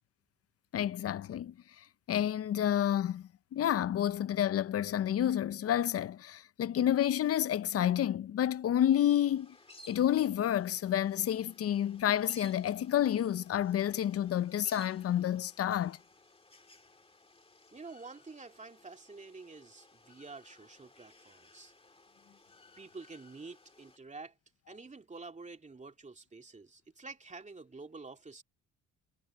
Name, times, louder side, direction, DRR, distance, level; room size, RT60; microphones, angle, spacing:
voice 1, 0.7-1.5 2.1-9.5 9.9-16.0, left 11 dB, 50° left, 0.6 m, -29 dB
sound 1, 9.2-24.0, left 1 dB, 20° left, 2.1 m, -59 dB
voice 2, 17.7-21.7 22.8-24.3 24.7-28.4, right 3 dB, 25° right, 2.7 m, -48 dB
cardioid pair, 90°, 30 cm